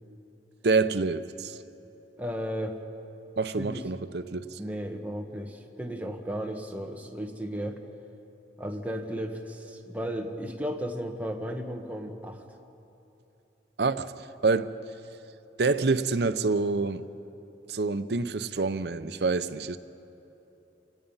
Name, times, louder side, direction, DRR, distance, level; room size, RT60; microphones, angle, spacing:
voice 1, 0.6-1.6 3.4-4.6 13.8-14.1 14.4-14.7 15.6-17.1 17.7-19.8, right 4 dB, 70° right, 0.7 m, -27 dB
voice 2, 2.2-2.8 3.6-3.9 4.6-7.8 8.6-12.4, equal, 10° right, 1.3 m, -34 dB
28.0 x 18.0 x 5.6 m
head